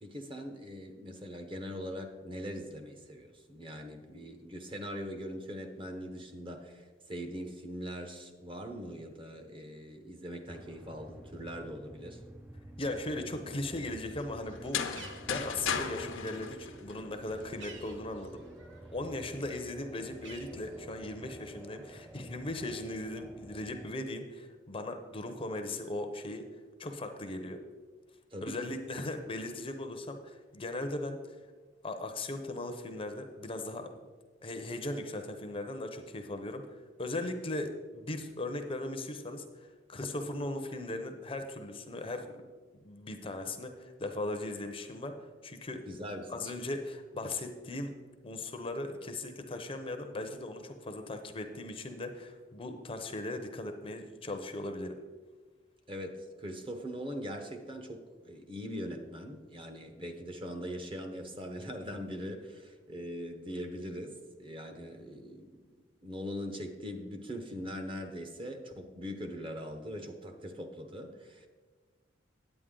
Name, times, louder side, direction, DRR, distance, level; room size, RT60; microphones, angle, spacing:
voice 1, 0.0-12.2 28.3-28.7 45.9-46.5 55.9-65.5 66.0-71.5, equal, 25° right, 5 dB, 0.9 m, -41 dB
sound 1, 10.5-24.0, right 1 dB, 10° right, 0.3 m, -50 dB
voice 2, 12.8-18.4 18.9-26.4 26.8-27.6 28.4-31.4 31.8-33.9 34.4-42.3 42.8-45.2 45.4-45.9 46.3-47.9 48.2-55.0, left 2 dB, 30° left, 6 dB, 0.6 m, -38 dB
Bird, 14.4-19.0 19.3-21.2, right 4 dB, 65° right, 1.0 m, -54 dB
sound 2, 14.5-17.4, left 7 dB, 80° left, 0.7 m, -36 dB
9.9 x 8.3 x 3.7 m, 1.4 s
head